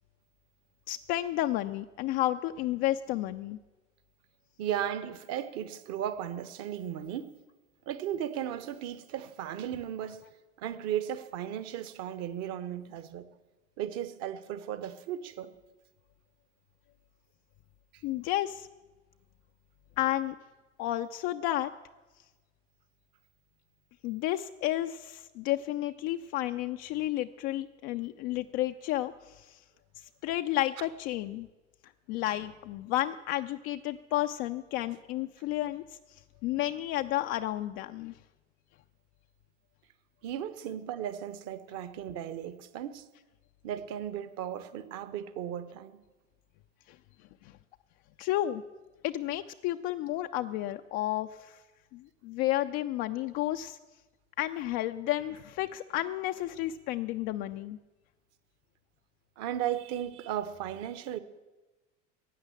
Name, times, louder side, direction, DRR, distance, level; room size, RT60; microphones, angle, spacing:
voice 1, 0.9-3.6 18.0-18.7 20.0-20.4 20.8-21.7 24.0-29.6 30.2-31.5 32.1-38.2 46.9-47.0 47.4-47.5 48.2-48.6 49.0-51.6 51.9-53.8 54.4-57.8, left 14 dB, 35° left, 7 dB, 0.4 m, -32 dB
voice 2, 4.6-7.4 7.9-10.2 10.6-13.3 13.8-15.5 40.2-43.1 43.6-46.0 59.4-61.2, right 10 dB, 40° right, 13 dB, 1.0 m, -36 dB
15.0 x 9.5 x 7.3 m, 1.2 s
figure-of-eight pair, 75°, 37 cm